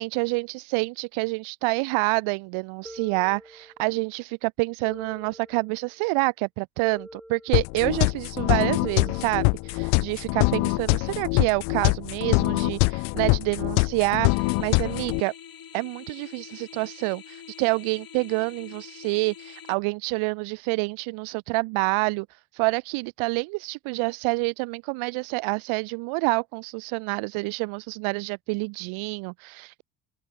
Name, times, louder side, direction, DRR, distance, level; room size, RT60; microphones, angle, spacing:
voice 1, 0.0-15.3 15.7-29.8, right 27 dB, 85° right, 1.7 m, -27 dB
sound 1, 2.8-4.0 4.8-6.0 6.8-8.0 8.8-10.0, equal, ahead, 4.7 m, -46 dB
sound 2, 7.5-15.2, left 36 dB, 85° left, 0.6 m, -24 dB
sound 3, 14.2-19.7, left 9 dB, 45° left, 3.6 m, -45 dB
open air
supercardioid pair, 85°, 48 cm